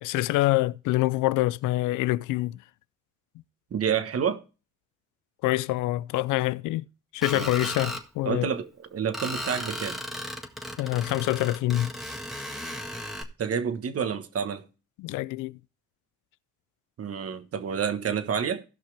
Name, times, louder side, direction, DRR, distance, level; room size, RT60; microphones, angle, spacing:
voice 1, 0.0-2.6 5.4-6.9 7.1-8.5 10.8-11.9 15.0-15.6, left 17 dB, 90° left, 0.5 m, -26 dB
voice 2, 3.7-4.4 7.3-7.5 8.2-10.0 13.4-14.6 17.0-18.6, right 7 dB, 50° right, 1.3 m, -29 dB
Screech, 7.2-8.0 9.1-13.2, equal, ahead, 1.6 m, -35 dB
17.0 x 5.7 x 3.3 m
cardioid pair, 90°, 30 cm